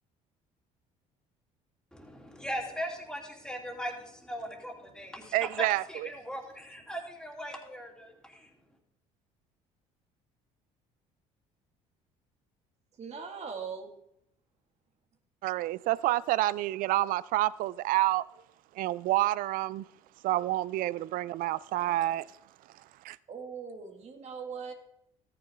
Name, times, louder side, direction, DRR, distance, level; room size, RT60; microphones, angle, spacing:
voice 1, 1.9-8.5, equal, 5° left, 2.9 m, -39 dB
voice 2, 5.3-6.1 15.4-18.2 18.8-19.8 20.2-22.2 23.0-23.2, right 16 dB, 65° right, 0.4 m, -28 dB
voice 3, 13.0-13.9 23.3-24.7, right 6 dB, 45° right, 2.0 m, -40 dB
13.5 x 9.6 x 3.6 m
supercardioid pair, 75°, 15 cm